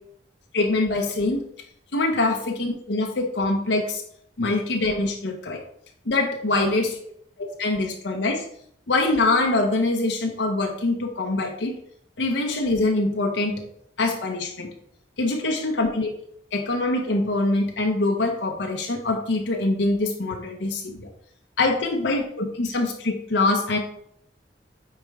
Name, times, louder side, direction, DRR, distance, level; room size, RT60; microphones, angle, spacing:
voice 1, 0.5-1.4 1.9-4.0 4.4-5.6 6.1-7.0 7.4-8.4 8.9-11.7 12.2-13.6 14.0-14.7 15.2-16.1 16.5-21.1 21.6-23.8, left 2 dB, 80° left, 2 dB, 0.9 m, -24 dB
8.8 x 4.4 x 3.6 m, 0.68 s
head